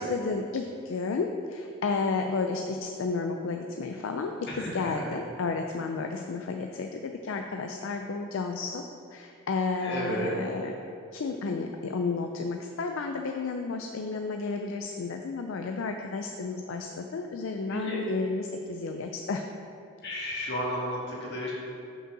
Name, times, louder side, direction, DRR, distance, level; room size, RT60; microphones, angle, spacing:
voice 1, 0.0-8.8 9.1-10.7 11.1-19.4, left 4 dB, 65° left, 4 dB, 0.4 m, -32 dB
voice 2, 4.5-5.2 9.8-10.3 17.7-18.0 20.0-21.5, equal, 50° left, -5 dB, 1.8 m, -33 dB
6.3 x 5.4 x 6.0 m, 2.6 s
head